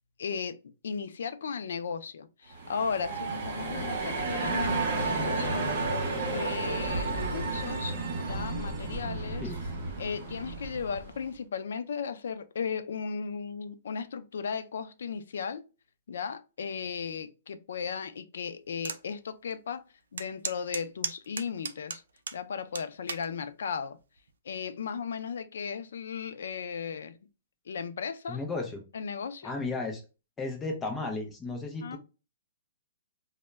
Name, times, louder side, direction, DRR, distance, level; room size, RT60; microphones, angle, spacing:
voice 1, 0.2-0.6 0.8-5.8 6.2-9.5 10.0-15.6 16.1-19.8 20.1-22.0 22.3-24.0 24.4-27.2 27.7-28.4 28.9-29.5 31.8-32.0, left 6 dB, 75° left, 0.3 m, -36 dB
sound 1, 2.5-11.2, right 3 dB, 40° right, 0.8 m, -32 dB
sound 2, 18.8-19.0 19.5-19.6 20.2-22.4 22.8-23.3 24.0-24.3, right 5 dB, 90° right, 0.4 m, -35 dB
voice 2, 28.3-28.8 29.4-30.0 30.4-32.0, left 3 dB, 10° left, 0.4 m, -34 dB
2.1 x 2.0 x 3.3 m
hypercardioid pair, 170°, 0 cm